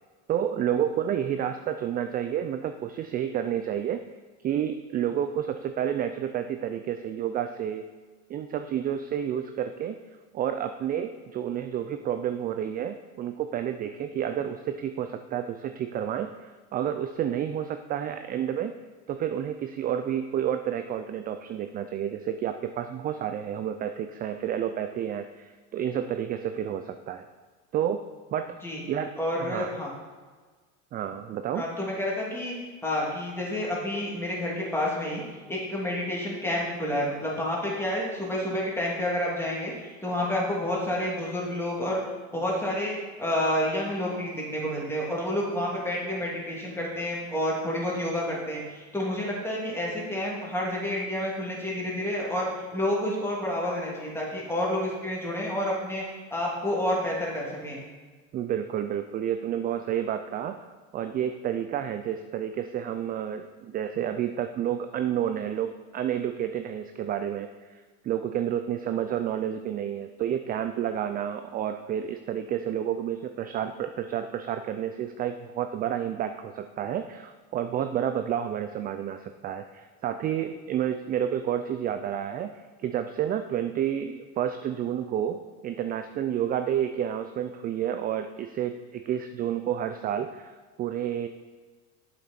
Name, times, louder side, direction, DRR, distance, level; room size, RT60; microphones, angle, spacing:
voice 1, 0.3-4.0 4.4-7.9 8.3-10.0 10.3-18.7 19.1-27.2 27.7-28.0 28.3-28.4 28.9-29.7 30.9-31.6 58.3-60.6 60.9-82.5 82.8-90.5 90.8-91.3, right 9 dB, 25° right, 8 dB, 0.3 m, -30 dB
voice 2, 29.2-29.9 31.5-32.5 32.8-35.2 35.5-42.0 42.3-56.0 56.3-57.8, left 1 dB, 5° left, -4 dB, 2.7 m, -29 dB
8.0 x 6.9 x 4.3 m, 1.4 s
hypercardioid pair, 100°, 38 cm